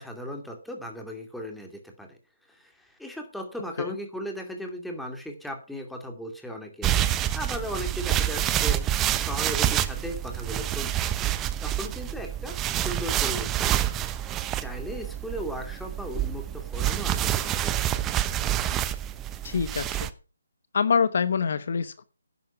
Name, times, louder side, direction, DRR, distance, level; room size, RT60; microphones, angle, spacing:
voice 1, 0.0-2.2 2.5-7.0 7.3-11.1 11.6-18.1, equal, ahead, 3 dB, 2.4 m, -37 dB
sound 1, 6.8-20.1, right 12 dB, 15° right, 0.8 m, -27 dB
voice 2, 19.4-20.0 20.7-22.0, left 6 dB, 55° left, 14 dB, 1.0 m, -25 dB
11.0 x 9.4 x 5.8 m, 0.35 s
hypercardioid pair, 155°, 0 cm